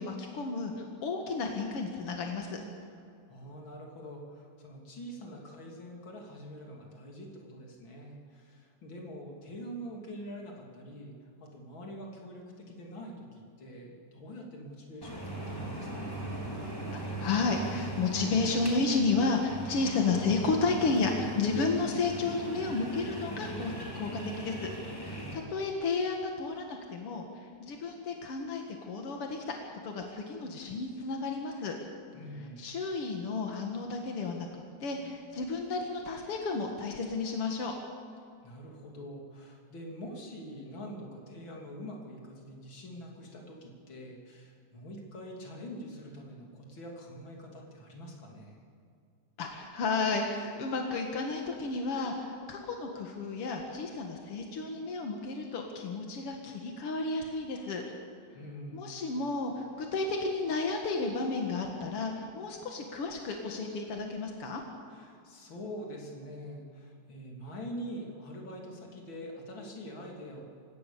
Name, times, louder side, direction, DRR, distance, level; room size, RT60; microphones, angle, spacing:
voice 1, 0.0-2.6 16.9-24.7 25.0-29.4 29.8-31.8 32.6-37.7 49.4-57.8 58.7-64.6, left 3 dB, 60° left, 2 dB, 1.5 m, -32 dB
voice 2, 3.3-11.1 11.4-16.2 25.0-25.3 32.1-32.7 38.4-48.6 58.3-58.9 64.9-70.4, equal, 30° left, 0 dB, 3.1 m, -44 dB
sound 1, 15.0-25.3, right 1 dB, 5° left, 3.0 m, -39 dB
27.0 x 16.5 x 7.0 m, 2.4 s
omnidirectional pair, 5.1 m